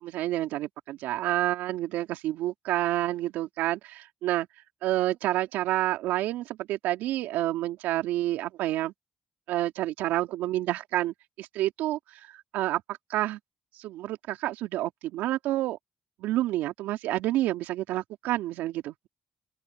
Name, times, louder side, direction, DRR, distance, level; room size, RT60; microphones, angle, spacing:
voice 1, 0.0-4.5 4.8-8.9 9.5-12.8 13.1-13.4 13.8-15.8 16.2-19.1, right 15 dB, 80° right, 3.1 m, -29 dB
open air
hypercardioid pair, 50°, 3 cm